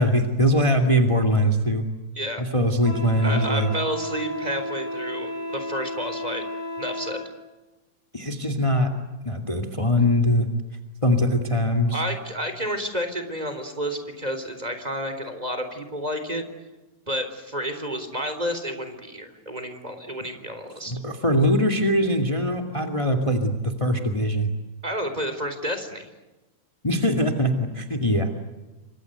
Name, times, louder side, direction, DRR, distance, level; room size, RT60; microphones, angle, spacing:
voice 1, 0.0-1.9 2.4-3.7 8.1-8.9 9.2-10.5 11.0-12.0 20.9-24.5 26.8-28.3, equal, 15° left, 6 dB, 1.0 m, -22 dB
Wind instrument woodwind instrument, 2.8-7.3, equal, 70° right, 8.7 m, -33 dB
voice 2, 3.2-6.4 6.8-7.2 11.9-16.4 17.1-21.0 24.8-26.1, equal, 10° right, 8 dB, 3.3 m, -30 dB
29.0 x 25.0 x 8.1 m, 1.1 s
omnidirectional pair, 4.8 m